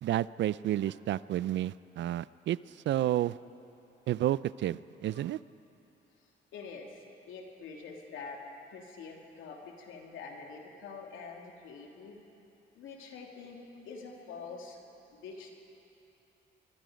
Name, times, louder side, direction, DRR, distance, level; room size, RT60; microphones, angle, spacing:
voice 1, 0.0-2.6 2.9-3.4 4.1-5.4, right 13 dB, 65° right, 18 dB, 0.5 m, -30 dB
voice 2, 6.5-8.4 8.7-12.2 12.7-14.8 15.1-15.5, left 4 dB, 85° left, 1 dB, 3.1 m, -46 dB
26.0 x 22.0 x 5.2 m, 2.8 s
cardioid pair, 90°, 20 cm